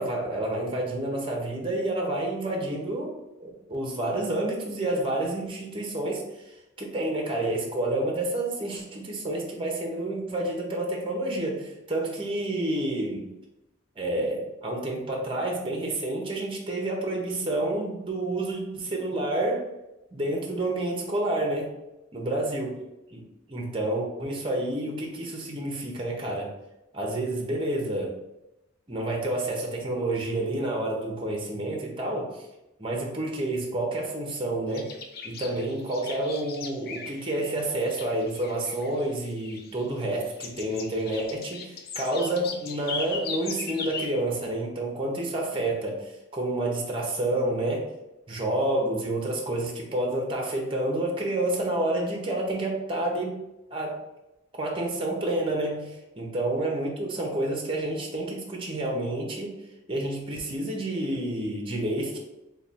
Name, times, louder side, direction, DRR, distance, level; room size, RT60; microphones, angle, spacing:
voice 1, 0.0-3.1 3.4-13.3 14.0-19.6 20.1-21.7 22.1-22.7 23.1-23.2 23.5-26.5 26.9-28.2 28.9-32.5 32.8-34.9 35.2-47.9 48.3-53.4 53.7-54.0 54.5-59.5 59.9-62.2, right 1 dB, 25° right, 0 dB, 0.7 m, -29 dB
sound 1, 34.7-37.6 37.8-39.0 39.4-40.1 40.4-44.1, left 5 dB, 50° left, 0.4 m, -38 dB
3.2 x 2.3 x 4.1 m, 0.93 s
head